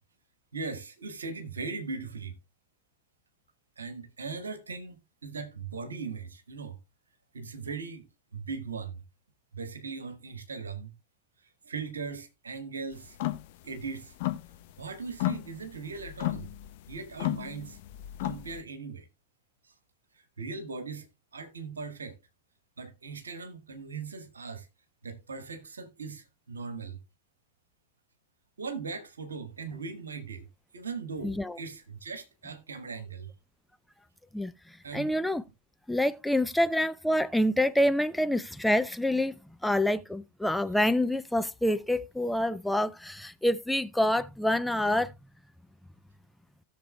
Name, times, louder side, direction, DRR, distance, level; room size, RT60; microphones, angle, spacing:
voice 1, 0.5-2.3 3.8-6.8 7.3-8.1 8.3-9.0 9.5-10.9 11.6-13.2 13.6-14.1 14.8-16.5 16.9-17.8 18.2-19.0 20.4-21.0 21.3-22.2 22.8-24.7 25.0-27.0 28.6-30.5 30.7-33.3 34.8-35.2, right 4 dB, 70° right, 1.4 m, -39 dB
sound 1, 13.1-13.5 13.8-14.8 15.1-18.6, left 16 dB, 50° left, 0.7 m, -33 dB
voice 2, 31.2-31.6 34.3-34.5 34.9-35.4 35.9-39.3 39.6-45.1, left 1 dB, 5° left, 0.4 m, -27 dB
16.5 x 6.7 x 2.2 m
figure-of-eight pair, 90°, 0 cm